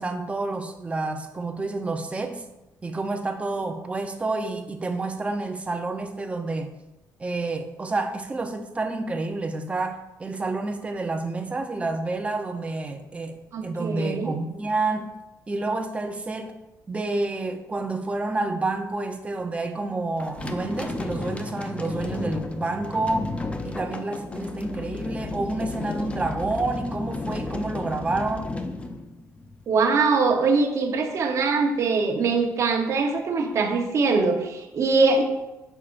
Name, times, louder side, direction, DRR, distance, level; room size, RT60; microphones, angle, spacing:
voice 1, 0.0-2.4 2.8-6.7 7.2-15.1 15.5-16.5 16.9-23.3 23.6-28.5, right 3 dB, 20° right, 5 dB, 0.7 m, -29 dB
voice 2, 13.5-14.3 29.7-35.2, right 4 dB, 50° right, 2 dB, 0.9 m, -22 dB
sound 1, 20.2-29.6, left 2 dB, 20° left, 0.5 m, -33 dB
8.5 x 5.7 x 2.5 m, 0.99 s
cardioid pair, 125°, 7 cm